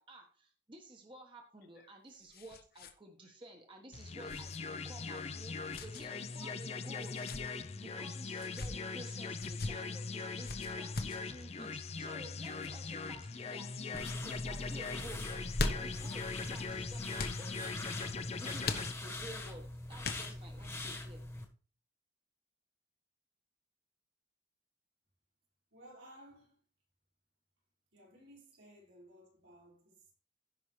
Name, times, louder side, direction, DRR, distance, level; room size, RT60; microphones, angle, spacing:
voice 1, 0.0-7.3 7.7-15.3 15.6-17.8 18.4-21.2, right 1 dB, 25° right, 1.2 m, -53 dB
sound 1, 1.6-2.9 3.2-3.4 4.3-4.6 5.7-6.1 7.0-7.4 8.3-8.7 9.4-9.7 10.4-11.2 12.4-12.7 13.3-13.7 14.0-14.2 15.3-16.0 17.1-17.4 18.6-19.3 20.0-20.6, left 3 dB, 55° left, 1.0 m, -40 dB
sound 2, 3.9-18.9, left 4 dB, 35° left, 0.5 m, -41 dB
sound 3, 13.9-21.4, left 2 dB, 15° left, 1.3 m, -43 dB
voice 2, 25.7-26.6 27.9-30.1, right 1 dB, 80° right, 5.0 m, -57 dB
15.5 x 5.7 x 3.2 m
head